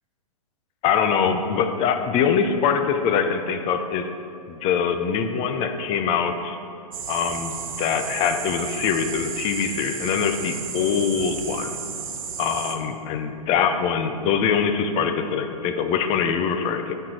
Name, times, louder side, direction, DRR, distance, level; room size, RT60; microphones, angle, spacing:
voice 1, 0.8-4.1 4.5-6.6 7.1-11.8 12.4-16.9, left 7 dB, 30° left, 7 dB, 0.7 m, -23 dB
sound 1, 6.9-12.8, right 6 dB, 60° right, 1.2 m, -33 dB
12.5 x 4.5 x 4.9 m, 2.6 s
hypercardioid pair, 115°, 20 cm